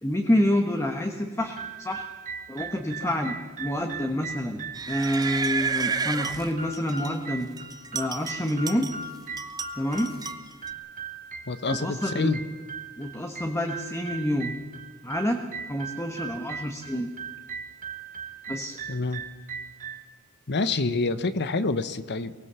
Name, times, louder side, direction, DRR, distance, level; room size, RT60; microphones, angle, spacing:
voice 1, 0.0-2.0 2.5-7.5 7.9-8.9 9.7-10.1 11.7-12.3 13.0-14.5 15.0-15.4 15.7-17.1 18.5-18.8, equal, 15° left, 4 dB, 1.3 m, -28 dB
sound 1, 1.4-20.1, right 5 dB, 35° right, 1.3 m, -39 dB
sound 2, 4.7-7.2 7.6-9.1 9.4-10.7, right 4 dB, 15° right, 0.8 m, -31 dB
voice 2, 11.5-12.4 18.9-19.2 20.5-22.3, left 3 dB, 50° left, 13 dB, 1.0 m, -27 dB
23.0 x 19.0 x 7.0 m, 1.4 s
head